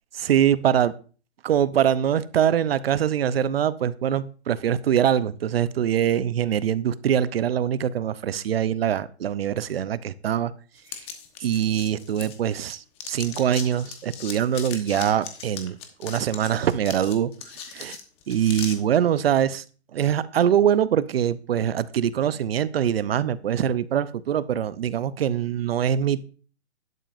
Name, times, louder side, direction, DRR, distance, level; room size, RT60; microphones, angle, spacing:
voice 1, 0.1-0.9 1.4-10.5 10.9-11.1 11.4-17.3 17.7-18.0 18.3-19.6 19.9-26.3, right 9 dB, 60° right, 0.7 m, -23 dB
sound 1, 10.9-12.7 13.0-18.8, left 8 dB, 15° left, 1.1 m, -38 dB
12.0 x 11.0 x 2.6 m
hypercardioid pair, 155°, 34 cm